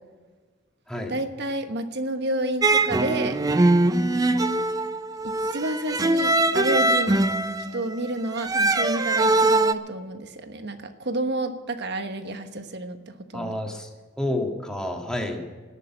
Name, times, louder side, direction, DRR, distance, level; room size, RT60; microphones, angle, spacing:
voice 1, 1.1-3.3 5.5-7.2 7.7-13.6, right 2 dB, 60° right, 7 dB, 1.2 m, -30 dB
sound 1, 2.6-9.7, right 2 dB, 20° right, 0.5 m, -22 dB
voice 2, 13.3-13.9 14.2-15.4, left 1 dB, 5° left, 1 dB, 1.7 m, -29 dB
18.0 x 6.7 x 8.7 m, 1.4 s
head